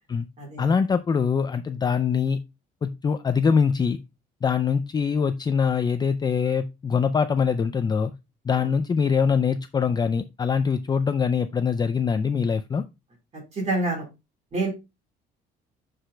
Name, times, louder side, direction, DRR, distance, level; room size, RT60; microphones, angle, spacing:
voice 1, 0.6-2.4 2.8-4.0 4.4-8.1 8.5-12.8, left 6 dB, 25° left, 10 dB, 0.4 m, -23 dB
voice 2, 13.5-14.0 14.5-14.7, right 2 dB, 40° right, -1 dB, 4.0 m, -27 dB
10.0 x 5.0 x 2.2 m, 0.24 s
cardioid pair, 110°, 17 cm